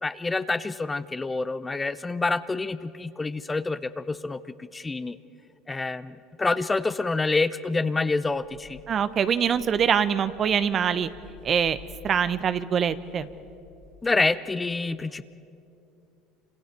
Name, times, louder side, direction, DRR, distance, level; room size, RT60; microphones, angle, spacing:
voice 1, 0.0-5.2 5.7-8.8 14.0-15.2, left 3 dB, 20° left, 13 dB, 0.7 m, -27 dB
sound 1, 8.2-14.2, left 6 dB, 90° left, 7.7 m, -51 dB
voice 2, 8.9-11.1 11.4-11.8 12.0-13.3, right 7 dB, 45° right, 12 dB, 1.0 m, -24 dB
28.0 x 26.5 x 4.7 m, 2.6 s
hypercardioid pair, 85°, 0 cm